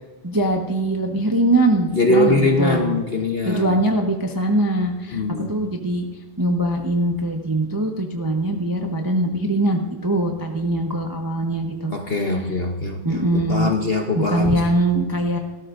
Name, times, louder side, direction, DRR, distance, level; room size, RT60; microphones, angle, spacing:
voice 1, 0.2-3.0 3.4-5.2 5.5-6.0 6.4-11.9 13.0-13.7 14.1-15.4, right 1 dB, 15° right, 2 dB, 0.7 m, -22 dB
voice 2, 1.9-3.8 5.1-5.7 11.9-14.6, left 2 dB, 40° left, 2 dB, 0.9 m, -22 dB
17.5 x 13.0 x 2.6 m, 1.2 s
omnidirectional pair, 1.9 m